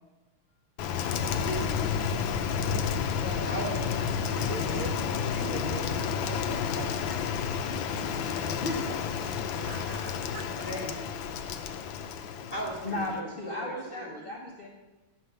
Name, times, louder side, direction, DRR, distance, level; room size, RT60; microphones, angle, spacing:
Rain, 0.8-13.2, left 7 dB, 70° left, 1.3 m, -31 dB
voice 1, 1.2-1.9 3.4-5.5 10.6-10.9 12.5-14.2, equal, 15° left, -3 dB, 2.4 m, -38 dB
voice 2, 3.1-3.5 8.6-8.9 12.4-12.5 12.8-14.7, left 2 dB, 50° left, -2 dB, 0.6 m, -35 dB
voice 3, 4.4-8.0 8.3-8.4 8.8-10.7, right 4 dB, 75° right, 5 dB, 0.9 m, -43 dB
10.0 x 5.2 x 6.6 m, 1.2 s
omnidirectional pair, 2.4 m